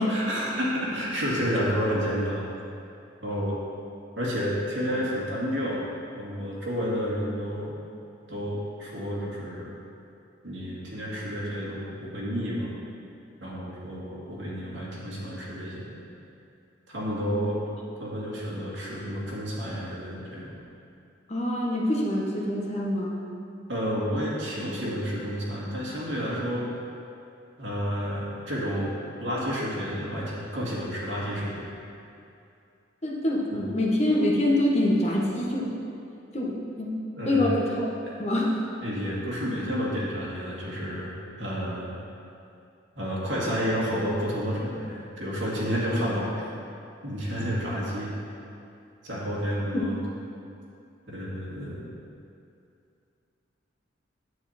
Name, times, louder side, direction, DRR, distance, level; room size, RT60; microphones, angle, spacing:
voice 1, 0.1-2.4 3.2-3.6 4.2-5.8 6.1-7.7 8.3-9.7 10.4-12.7 13.4-16.0 16.9-17.6 18.0-20.5 23.7-26.7 27.6-28.9 29.2-31.5 33.5-33.6 37.2-37.5 38.8-41.1 41.4-41.9 43.0-46.4 47.0-48.1 49.0-50.0 51.1-51.8, equal, 70° right, -6 dB, 2.4 m, -30 dB
voice 2, 21.3-23.2 33.0-35.7 36.3-37.0 37.2-37.9 38.2-38.6 49.7-49.9, left 1 dB, 35° left, -3 dB, 1.2 m, -25 dB
9.3 x 8.2 x 4.3 m, 2.6 s
head